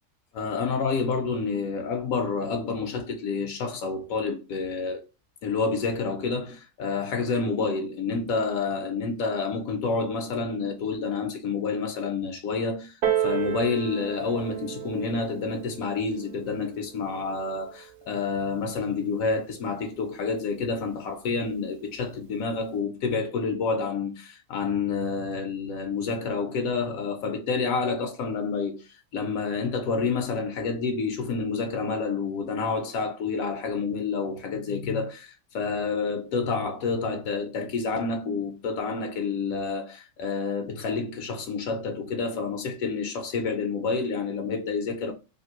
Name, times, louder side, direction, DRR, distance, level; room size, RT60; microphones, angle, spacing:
voice 1, 0.3-5.0 5.4-12.9 13.2-28.8 29.1-45.1, left 4 dB, 85° left, 1.0 m, -29 dB
Piano, 13.0-18.2 19.0-19.1, right 10 dB, 60° right, 0.6 m, -32 dB
2.7 x 2.5 x 2.9 m
omnidirectional pair, 1.4 m